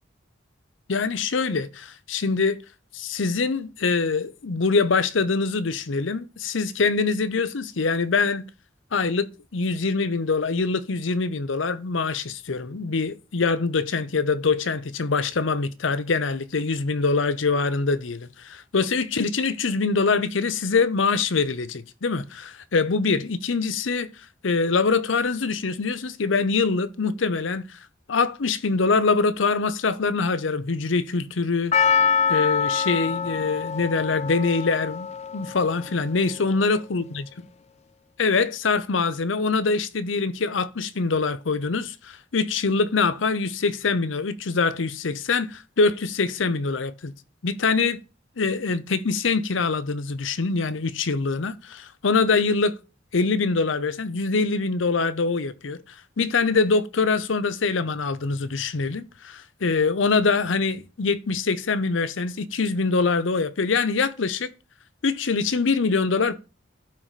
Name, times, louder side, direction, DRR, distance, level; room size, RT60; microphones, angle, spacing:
voice 1, 0.9-2.6 2.9-8.4 8.9-24.1 24.4-27.6 28.1-31.7 32.3-35.1 35.3-37.0 38.2-47.1 47.4-48.0 48.4-52.8 53.1-55.8 56.2-64.5 65.0-66.4, left 4 dB, 80° left, 0.7 m, -24 dB
Percussion, 31.7-36.1 36.3-36.4, left 6 dB, 35° left, 0.4 m, -25 dB
11.5 x 4.7 x 4.1 m
head